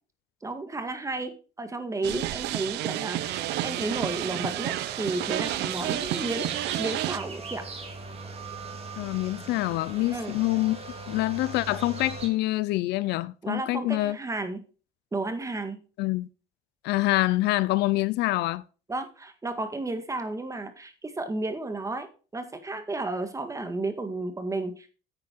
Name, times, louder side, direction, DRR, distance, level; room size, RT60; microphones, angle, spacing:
voice 1, 0.4-6.5 6.8-7.6 10.1-10.3 13.4-14.6 15.1-15.8 18.9-22.1 22.3-24.9, right 2 dB, 20° right, 1.8 m, -32 dB
sound 1, 2.0-7.2, right 15 dB, 85° right, 0.7 m, -31 dB
sound 2, 3.2-12.3, right 4 dB, 35° right, 2.7 m, -40 dB
voice 2, 9.0-10.8 11.1-14.2 16.0-16.3 16.8-18.6, left 18 dB, 85° left, 0.6 m, -26 dB
9.8 x 7.5 x 4.6 m
cardioid pair, 110°, 17 cm